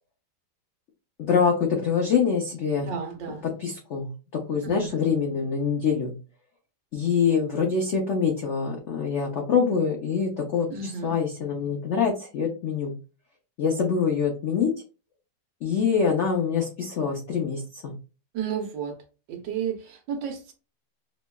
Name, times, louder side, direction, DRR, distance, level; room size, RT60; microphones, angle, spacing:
voice 1, 1.2-2.9 3.4-6.1 6.9-12.9 13.6-14.7 15.6-17.9, left 6 dB, 75° left, 0.6 m, -25 dB
voice 2, 2.9-3.4 4.6-4.9 10.7-11.1 18.3-19.0 19.3-20.5, right 7 dB, 80° right, 1.5 m, -32 dB
5.5 x 2.2 x 2.2 m
omnidirectional pair, 2.0 m